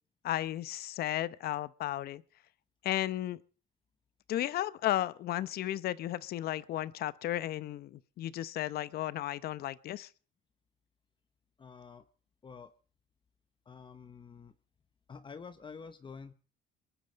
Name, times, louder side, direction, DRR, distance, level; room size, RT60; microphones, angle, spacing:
voice 1, 0.2-2.2 2.8-3.4 4.3-10.1, left 13 dB, 65° left, 0.8 m, -34 dB
voice 2, 11.6-12.0 12.4-12.7 13.7-14.5 15.1-16.3, left 5 dB, 30° left, 0.9 m, -48 dB
22.5 x 11.5 x 5.2 m
cardioid pair, 110°, 17 cm